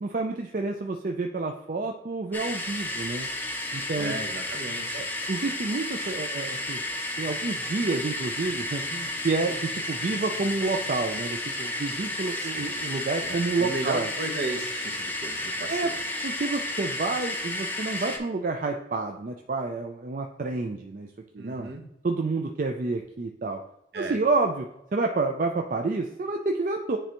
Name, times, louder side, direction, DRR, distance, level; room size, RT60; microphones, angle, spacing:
voice 1, 0.0-3.3 3.7-4.2 4.9-6.8 7.2-14.1 15.7-15.9 16.2-21.1 21.3-21.7 22.0-23.6 23.9-24.7 24.9-27.0, right 3 dB, 45° right, 3 dB, 0.4 m, -29 dB
sound 1, 2.3-18.2, left 1 dB, 10° left, 0.6 m, -32 dB
voice 2, 3.9-5.1 12.4-12.7 13.2-16.0 21.4-21.8 23.9-24.2, right 2 dB, 65° right, 4 dB, 0.9 m, -35 dB
9.9 x 3.3 x 3.0 m, 0.81 s
head